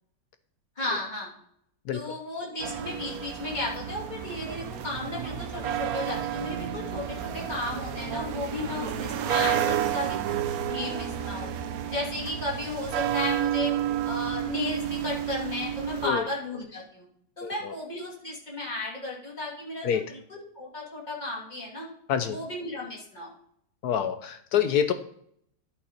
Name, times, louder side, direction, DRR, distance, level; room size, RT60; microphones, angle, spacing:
voice 1, 0.8-1.4 1.9-11.5 11.9-13.8 14.0-17.1 17.4-21.9 22.3-23.3, left 2 dB, 25° left, -3 dB, 2.7 m, -34 dB
sound 1, 2.6-16.1, right 10 dB, 65° right, 1.0 m, -31 dB
voice 2, 17.4-17.7 19.8-20.0 22.1-22.4 23.8-24.9, left 8 dB, 70° left, 9 dB, 1.0 m, -26 dB
11.0 x 5.4 x 4.3 m, 0.67 s
omnidirectional pair, 2.0 m